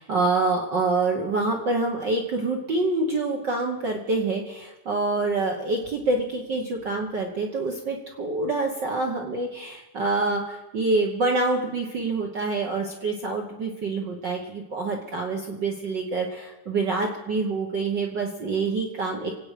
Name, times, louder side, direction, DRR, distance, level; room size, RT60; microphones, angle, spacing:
voice 1, 0.0-19.3, right 3 dB, 70° right, 2 dB, 1.0 m, -26 dB
26.0 x 8.8 x 5.0 m, 1.0 s
omnidirectional pair, 3.8 m